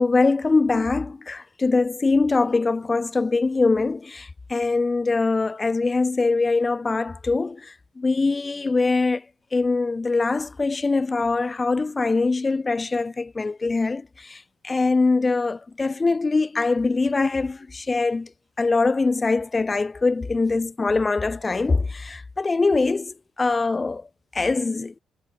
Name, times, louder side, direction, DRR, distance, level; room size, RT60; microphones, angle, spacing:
voice 1, 0.0-9.2 9.5-18.3 18.6-24.1 24.3-24.9, left 3 dB, 25° left, 1.4 m, -23 dB
cardioid pair, 90°, 0 cm